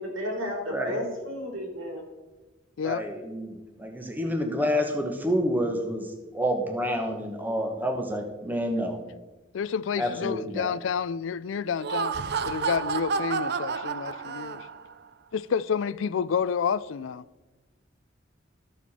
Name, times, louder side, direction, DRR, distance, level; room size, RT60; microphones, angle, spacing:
voice 1, 0.0-2.0, equal, 85° right, 4.0 m, -32 dB
voice 2, 2.8-6.1 6.3-9.0 10.0-10.7, equal, 10° right, 1.0 m, -28 dB
voice 3, 9.5-12.1 12.5-14.7 15.3-17.2, left 6 dB, 90° left, 0.4 m, -29 dB
Laughter, 11.7-14.9, right 5 dB, 60° right, 0.5 m, -30 dB
13.0 x 7.2 x 4.2 m
head